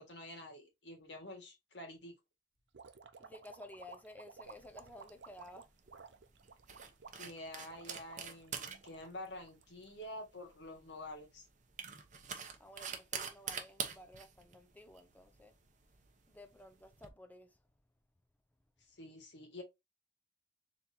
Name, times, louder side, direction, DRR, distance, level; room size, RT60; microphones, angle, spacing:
voice 1, 0.0-2.1 7.1-11.5 18.8-19.6, left 1 dB, 75° left, 1.9 m, -48 dB
sound 1, 2.7-10.1, right 5 dB, 85° right, 0.6 m, -55 dB
voice 2, 3.2-5.7 12.6-15.5 16.3-17.6, left 1 dB, 10° left, 0.7 m, -54 dB
sound 2, 4.5-17.1, right 7 dB, 45° right, 0.9 m, -47 dB
4.3 x 3.5 x 2.8 m
head